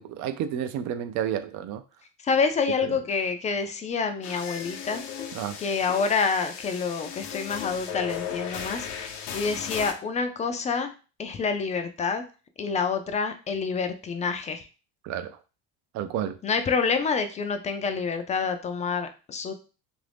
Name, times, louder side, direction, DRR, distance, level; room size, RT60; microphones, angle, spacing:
voice 1, 0.0-1.8 2.8-2.9 5.3-5.6 15.0-15.4 15.9-16.4, right 9 dB, 60° right, 0.5 m, -31 dB
voice 2, 2.2-5.0 5.6-10.9 11.2-12.2 12.6-14.7 16.4-19.5, left 5 dB, 20° left, 0.3 m, -27 dB
sound 1, 4.2-9.9, left 8 dB, 85° left, 0.7 m, -36 dB
2.9 x 2.6 x 3.3 m
cardioid pair, 135°, 33 cm